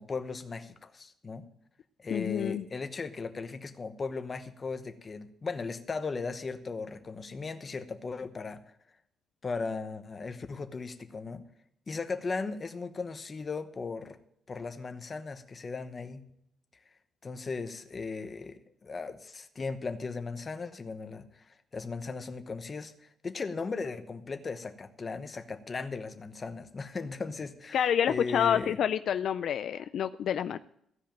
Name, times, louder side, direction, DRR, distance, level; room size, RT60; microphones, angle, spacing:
voice 1, 0.0-1.4 2.0-8.6 9.4-11.4 11.9-14.2 14.5-16.2 17.2-21.4 21.7-28.8, left 4 dB, 30° left, 9 dB, 1.0 m, -37 dB
voice 2, 2.1-2.6 27.7-30.6, left 9 dB, 60° left, 11 dB, 0.4 m, -28 dB
15.5 x 5.3 x 8.9 m, 0.73 s
cardioid pair, 145°, 0 cm